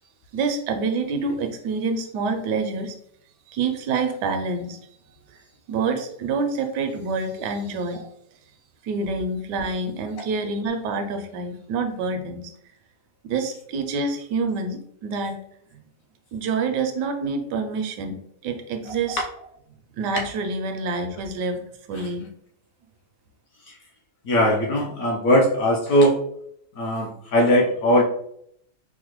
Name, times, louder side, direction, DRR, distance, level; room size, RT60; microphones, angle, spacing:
voice 1, 0.3-2.9 3.5-4.8 5.3-5.4 5.7-8.0 8.8-12.5 13.2-15.4 15.7-15.8 16.3-18.2 18.4-19.2 20.0-21.6 21.9-22.3, right 4 dB, 80° right, 6 dB, 1.2 m, -27 dB
voice 2, 24.2-26.2 26.8-28.0, equal, 65° left, -1 dB, 0.9 m, -19 dB
4.6 x 2.1 x 3.0 m, 0.70 s
omnidirectional pair, 1.8 m